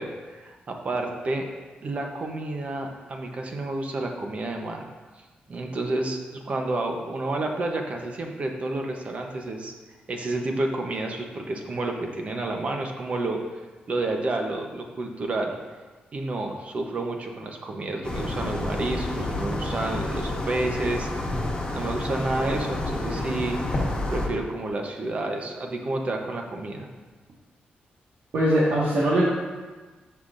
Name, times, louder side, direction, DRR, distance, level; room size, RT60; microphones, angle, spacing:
voice 1, 0.0-1.4 1.8-4.9 5.5-9.7 10.1-13.4 13.9-15.6 16.1-21.1 21.7-23.8 24.1-26.9, right 2 dB, 40° right, 3 dB, 0.9 m, -30 dB
sound 1, 18.0-24.3, left 2 dB, 25° left, 1.4 m, -29 dB
voice 2, 28.3-29.3, right 1 dB, 70° right, -8 dB, 1.7 m, -21 dB
12.5 x 5.7 x 2.6 m, 1.3 s
wide cardioid pair, 145°, 3 cm